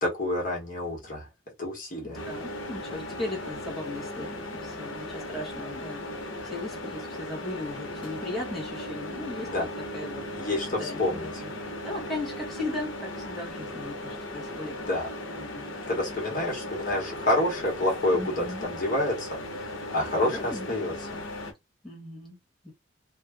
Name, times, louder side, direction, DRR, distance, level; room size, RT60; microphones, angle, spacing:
voice 1, 0.0-1.2 1.6-2.2 9.5-9.7 10.3-11.3 14.9-15.1 15.9-19.3 19.6-20.9, left 1 dB, 40° left, 1.2 m, -28 dB
voice 2, 2.0-11.5 11.8-14.8 15.3-15.7 16.3-16.7 18.1-18.6 20.2-20.7 21.1-21.2 21.8-22.4 22.6-22.7, left 2 dB, ahead, 1.2 m, -38 dB
sound 1, 2.1-21.5, left 1 dB, 75° left, 0.9 m, -37 dB
2.6 x 2.4 x 3.4 m
head